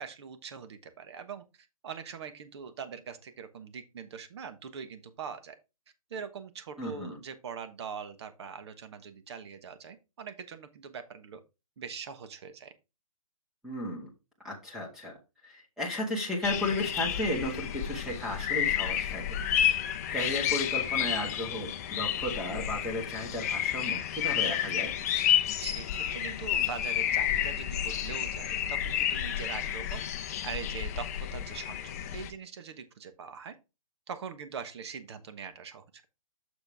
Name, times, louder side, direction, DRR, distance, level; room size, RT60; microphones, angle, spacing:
voice 1, 0.0-1.4 1.8-5.6 6.1-11.4 11.8-12.7 25.6-30.0 30.4-33.5 34.1-36.1, right 6 dB, 50° right, 10 dB, 1.3 m, -42 dB
voice 2, 6.8-7.2 13.6-14.1 14.4-15.1 15.4-19.4 19.7-24.9, left 1 dB, 5° right, -2 dB, 1.7 m, -34 dB
sound 1, 16.4-32.3, left 10 dB, 25° left, 0.6 m, -31 dB
6.9 x 6.7 x 3.4 m, 0.27 s
hypercardioid pair, 160°, 18 cm